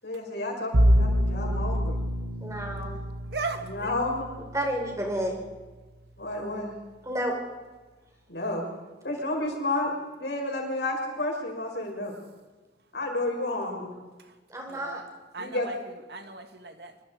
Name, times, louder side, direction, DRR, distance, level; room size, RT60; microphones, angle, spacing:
voice 1, 0.0-1.9 3.6-4.3 6.2-6.7 8.3-8.6 9.0-9.9 10.2-12.1 12.9-13.9 15.4-15.7, left 2 dB, 65° left, 0 dB, 6.8 m, -31 dB
Bowed string instrument, 0.7-5.8, equal, 80° right, 1.8 m, -27 dB
voice 2, 2.4-2.9 4.5-5.3 7.0-7.3 14.5-15.0, equal, 15° right, 1 dB, 5.0 m, -30 dB
voice 3, 3.3-4.0 14.2-14.4 14.7-15.0 15.3-17.0, right 3 dB, 60° right, 7 dB, 1.8 m, -37 dB
26.0 x 24.5 x 4.9 m, 1.3 s
head